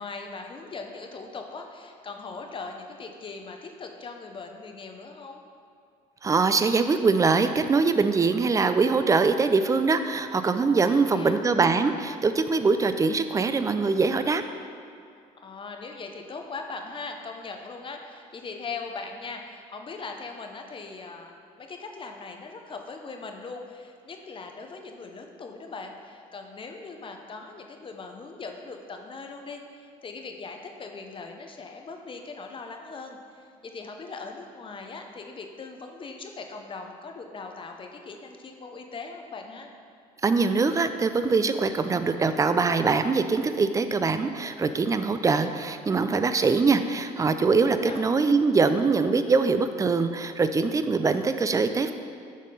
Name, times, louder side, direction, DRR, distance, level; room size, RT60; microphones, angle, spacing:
voice 1, 0.0-5.4 10.8-11.4 15.3-39.7 47.6-48.1, left 4 dB, 35° left, 4 dB, 0.6 m, -40 dB
voice 2, 6.2-14.4 40.2-51.9, right 4 dB, 20° right, 10 dB, 0.4 m, -23 dB
6.4 x 3.6 x 5.5 m, 2.3 s
supercardioid pair, 80°, 15 cm